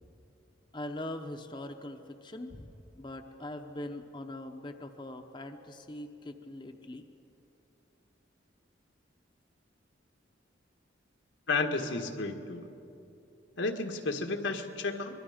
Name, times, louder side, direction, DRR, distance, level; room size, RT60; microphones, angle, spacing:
voice 1, 0.7-2.7 3.0-7.0, left 1 dB, 25° left, 5 dB, 0.8 m, -42 dB
voice 2, 11.5-12.7 13.6-15.2, left 3 dB, 85° left, 4 dB, 1.6 m, -32 dB
25.0 x 22.0 x 5.1 m, 2.9 s
head